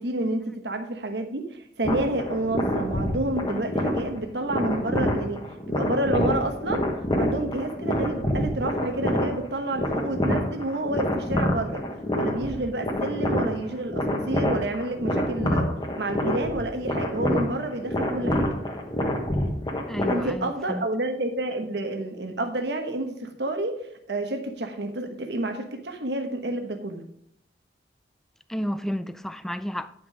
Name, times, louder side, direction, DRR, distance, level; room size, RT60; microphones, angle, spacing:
voice 1, 0.0-5.4 5.7-6.8 7.2-11.8 12.1-15.7 16.0-18.5 20.1-23.8 24.1-27.0, right 1 dB, 75° right, 1.2 m, -29 dB
sound 1, 1.8-20.6, equal, 25° left, 1.3 m, -27 dB
voice 2, 19.9-20.9 28.5-29.9, equal, ahead, 0.4 m, -31 dB
9.7 x 6.0 x 4.9 m
head